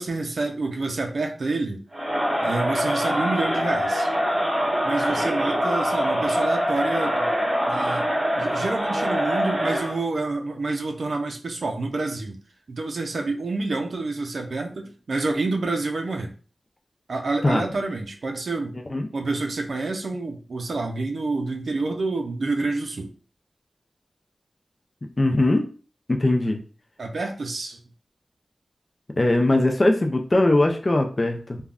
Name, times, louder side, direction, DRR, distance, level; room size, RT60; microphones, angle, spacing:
voice 1, 0.0-1.8 2.4-4.1 4.8-7.3 7.7-8.1 8.4-12.4 12.7-16.3 17.1-18.8 19.1-23.1 27.0-27.8, right 3 dB, 75° right, 3 dB, 0.5 m, -28 dB
Crowd, 1.9-10.0, equal, 55° right, 1.5 m, -24 dB
voice 2, 25.2-25.6 26.1-26.6 29.2-31.6, left 2 dB, 40° left, 3 dB, 0.4 m, -20 dB
3.4 x 2.2 x 2.4 m, 0.38 s
wide cardioid pair, 80°, 0 cm